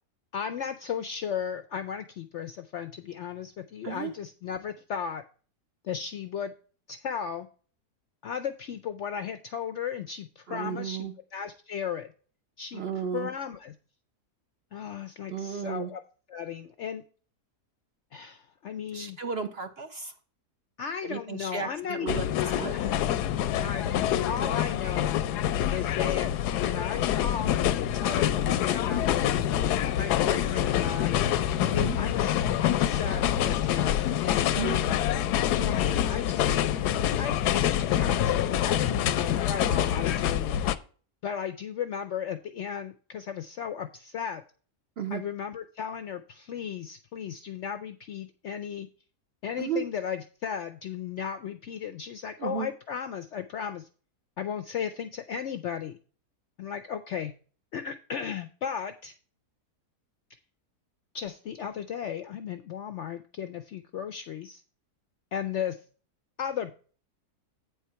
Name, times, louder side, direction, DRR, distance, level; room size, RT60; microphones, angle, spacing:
voice 1, 0.3-5.2 5.8-6.5 6.9-7.5 8.2-12.1 12.6-12.8 13.1-13.7 14.7-16.0 16.3-17.0 18.1-19.2 20.8-22.9 23.6-25.2 25.7-29.6 30.0-31.2 31.7-34.6 35.5-36.5 36.9-40.7 41.2-44.4 45.1-48.9 49.4-53.9 54.4-56.0 56.6-57.3 57.7-59.1 61.1-64.6 65.3-65.8 66.4-66.7, left 8 dB, 70° left, 9 dB, 0.7 m, -35 dB
voice 2, 10.5-11.1 12.7-13.3 15.3-15.9 18.9-20.1 21.0-22.7 31.6-32.0 34.6-34.8 45.0-45.2 49.6-49.9 52.4-52.7, right 6 dB, 50° right, 7 dB, 0.8 m, -34 dB
sound 1, 22.1-40.8, left 11 dB, 85° left, 1.1 m, -26 dB
8.7 x 4.7 x 5.6 m, 0.39 s
omnidirectional pair, 1.7 m